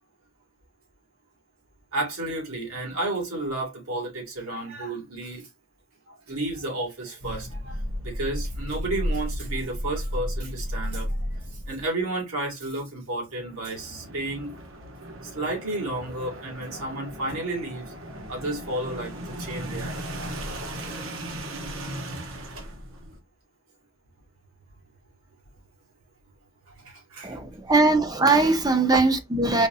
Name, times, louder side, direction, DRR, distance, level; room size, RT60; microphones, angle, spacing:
voice 1, 1.9-5.5 6.1-11.1 11.7-14.5 15.3-17.9 18.3-19.9 26.8-27.4, right 2 dB, 85° right, 2.3 m, -32 dB
sound 1, 7.2-11.8 13.3-23.2, equal, 65° right, 1.0 m, -34 dB
voice 2, 27.2-29.7, right 3 dB, 20° right, 0.5 m, -21 dB
4.8 x 3.1 x 2.7 m
head